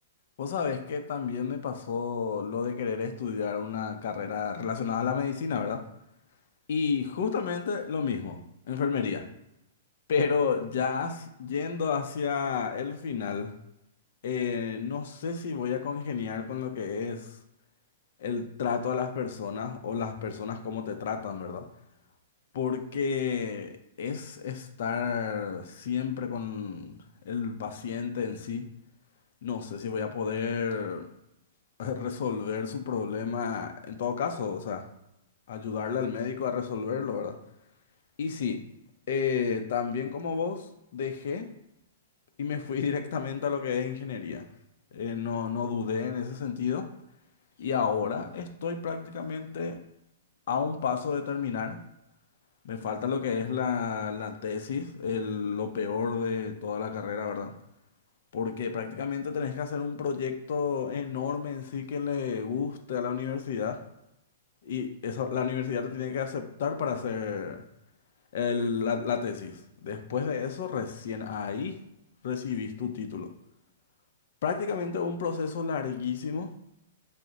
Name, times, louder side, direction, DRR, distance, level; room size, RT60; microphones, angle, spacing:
voice 1, 0.4-5.8 6.7-8.4 8.7-9.3 10.1-13.5 14.2-17.4 18.2-21.7 22.5-28.6 29.4-31.0 31.8-34.8 35.5-37.4 38.2-38.6 39.1-40.7 40.9-41.5 42.4-44.5 44.9-46.8 47.6-49.8 50.5-51.8 52.6-57.5 58.3-63.8 64.6-67.6 68.3-71.8 72.2-73.3 74.4-76.5, left 6 dB, 65° left, 6 dB, 0.5 m, -31 dB
3.6 x 2.1 x 3.9 m, 0.84 s
hypercardioid pair, 135°, 0 cm